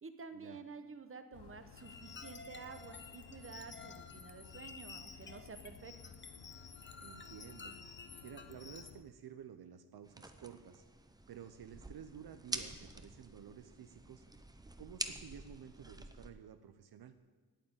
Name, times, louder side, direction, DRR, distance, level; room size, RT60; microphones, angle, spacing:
voice 1, 0.0-5.9, right 5 dB, 35° right, 9 dB, 1.0 m, -50 dB
sound 1, 1.3-9.0, left 7 dB, 75° left, 0.8 m, -57 dB
sound 2, 1.8-8.9, left 4 dB, 30° left, 0.8 m, -52 dB
voice 2, 7.0-7.8 8.2-10.8 11.3-14.2 14.8-17.2, right 8 dB, 70° right, 9 dB, 0.7 m, -52 dB
sound 3, 10.0-16.3, right 2 dB, 10° right, 0.7 m, -47 dB
9.0 x 8.7 x 8.8 m, 1.4 s
wide cardioid pair, 115°, 39 cm